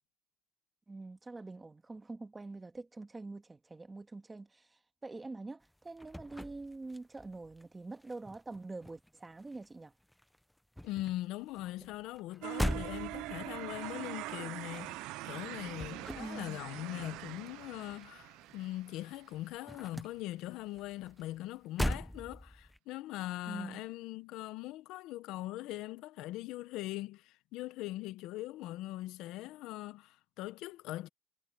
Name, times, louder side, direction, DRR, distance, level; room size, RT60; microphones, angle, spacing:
voice 1, 0.9-9.9 16.2-16.6 23.5-23.8, right 3 dB, 15° right, 1.8 m, -45 dB
sound 1, 5.7-7.6 7.9-9.8 10.1-18.8 19.1-22.8, equal, ahead, 0.6 m, -41 dB
voice 2, 10.8-31.1, left 16 dB, 75° left, 0.7 m, -41 dB
sound 2, 12.4-19.4, right 19 dB, 80° right, 0.4 m, -43 dB
cardioid pair, 150°, 0 cm